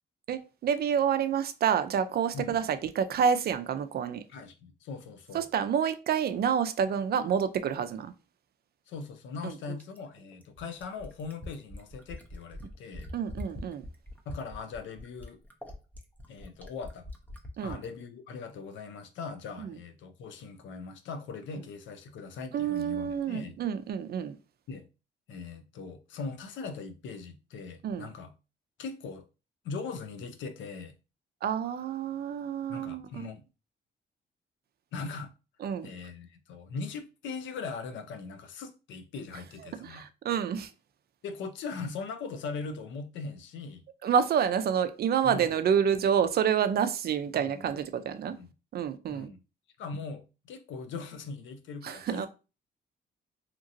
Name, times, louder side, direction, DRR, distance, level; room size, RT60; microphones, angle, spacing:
voice 1, 0.3-4.2 5.3-8.1 9.4-9.5 13.1-13.8 17.6-17.8 19.6-19.8 22.5-24.4 27.8-28.1 31.4-33.3 35.6-35.9 39.8-40.7 44.0-48.4 48.7-49.3 51.8-52.3, right 8 dB, 55° right, 0.4 m, -28 dB
voice 2, 4.3-5.5 8.9-13.1 14.3-15.4 16.3-17.1 17.6-23.6 24.7-24.9 25.3-28.3 28.8-29.2 29.6-30.9 32.7-33.4 34.9-35.3 35.8-40.1 41.2-43.8 45.2-45.6 47.3-47.7 48.3-48.5 49.1-49.4 49.8-52.3, left 4 dB, 85° left, 0.5 m, -40 dB
Fill (with liquid), 9.8-17.9 19.2-19.3, left 1 dB, 10° left, 0.6 m, -43 dB
2.9 x 2.7 x 2.6 m
cardioid pair, 100°, 19 cm